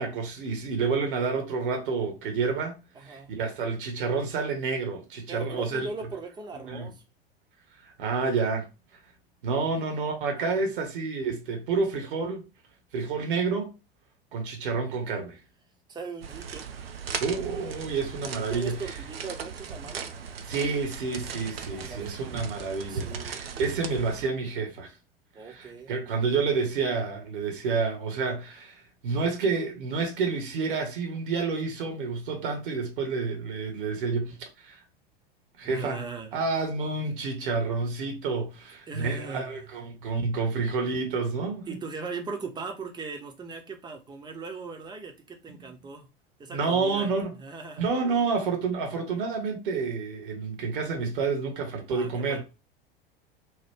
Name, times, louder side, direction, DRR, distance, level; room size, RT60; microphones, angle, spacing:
voice 1, 0.0-5.9 6.7-6.9 7.8-8.7 9.4-12.4 12.9-13.7 14.3-15.4 17.2-18.7 20.5-24.9 25.4-34.8 35.6-36.0 36.3-41.7 46.5-47.3 47.8-52.4, right 4 dB, 60° right, 1.0 m, -29 dB
voice 2, 2.9-3.3 5.3-7.0 10.3-10.7 15.9-16.7 18.5-20.1 21.7-22.2 22.9-23.5 25.3-26.0 35.6-36.4 38.9-39.7 41.7-46.1 46.4-47.9 51.9-52.4, right 4 dB, 15° right, 0.6 m, -39 dB
sound 1, 16.2-24.3, right 6 dB, 75° right, 0.5 m, -38 dB
2.9 x 2.2 x 3.4 m
figure-of-eight pair, 85°, 30 cm